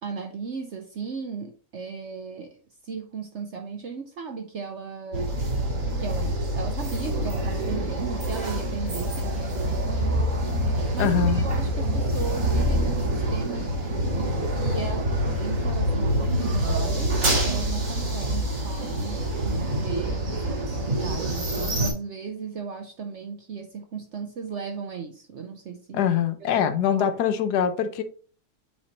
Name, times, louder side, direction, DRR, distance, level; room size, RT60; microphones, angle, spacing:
voice 1, 0.0-2.6 2.8-5.3 6.0-10.2 10.9-13.7 14.1-26.1 26.5-26.7 26.9-27.2, right 5 dB, 60° right, 0.8 m, -36 dB
sound 1, 5.1-21.9, right 1 dB, 85° right, 3.0 m, -26 dB
voice 2, 11.0-11.4 25.9-28.0, left 8 dB, 75° left, 1.2 m, -23 dB
7.5 x 4.4 x 2.8 m
omnidirectional pair, 1.8 m